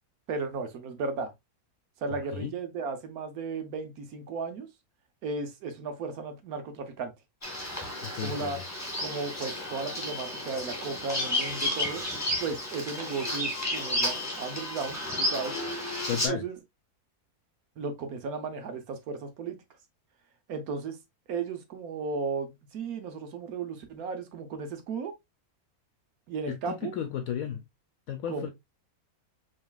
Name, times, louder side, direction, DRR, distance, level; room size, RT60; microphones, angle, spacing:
voice 1, 0.3-1.3 2.0-4.7 5.2-7.1 8.2-8.6 9.0-12.0 12.4-15.5 16.1-16.6 17.8-19.6 20.5-21.0 21.3-25.1 26.3-26.9 28.3-28.5, right 4 dB, 75° right, 1.3 m, -35 dB
voice 2, 2.1-2.5 8.0-8.6 16.1-16.4 26.5-27.6 28.1-28.5, left 9 dB, 70° left, 0.9 m, -34 dB
Bird vocalization bird call bird song, 7.4-16.3, left 1 dB, 10° left, 1.6 m, -32 dB
5.0 x 3.1 x 2.3 m
omnidirectional pair, 1.6 m